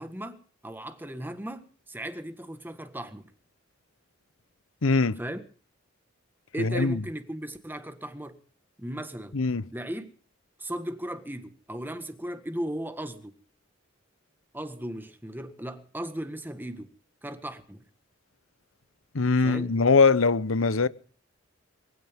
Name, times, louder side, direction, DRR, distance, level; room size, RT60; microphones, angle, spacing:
voice 1, 0.0-3.3 5.2-5.4 6.5-8.4 8.8-9.3 9.7-10.1 10.6-13.4 14.5-16.9 17.2-17.8 19.4-19.7, right 1 dB, 10° right, 1.6 m, -36 dB
voice 2, 4.8-5.2 6.6-7.0 9.3-9.6 19.1-20.9, left 4 dB, 85° left, 1.0 m, -22 dB
23.0 x 16.5 x 3.7 m
head